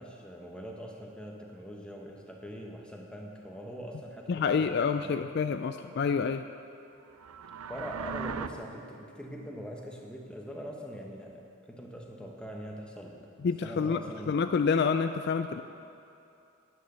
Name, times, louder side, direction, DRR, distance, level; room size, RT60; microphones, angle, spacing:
voice 1, 0.0-5.2 7.7-14.3, equal, 5° left, 0 dB, 1.1 m, -43 dB
voice 2, 4.3-6.5 13.4-15.6, left 5 dB, 50° left, 9 dB, 0.3 m, -28 dB
sound 1, 7.1-8.5, right 6 dB, 90° right, 0.5 m, -38 dB
9.5 x 9.5 x 6.8 m, 2.8 s
head